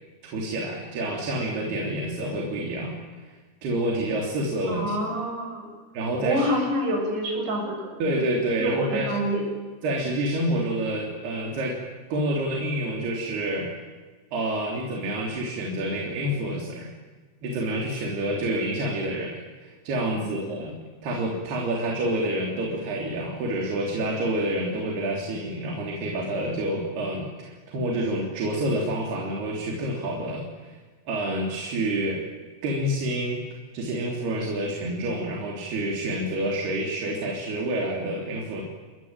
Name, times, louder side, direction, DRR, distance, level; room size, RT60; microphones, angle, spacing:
voice 1, 0.3-3.4 3.6-4.9 5.9-6.5 8.0-9.1 9.8-11.8 12.1-13.7 14.3-16.9 17.4-20.7 21.0-30.8 31.1-32.2 32.6-33.4 33.7-38.6, right 1 dB, 65° right, -1 dB, 5.4 m, -28 dB
voice 2, 4.7-5.7 6.2-7.9 8.5-9.4 20.1-20.6, equal, 80° right, 1 dB, 9.7 m, -27 dB
29.5 x 22.0 x 9.1 m, 1.3 s
omnidirectional pair, 5.0 m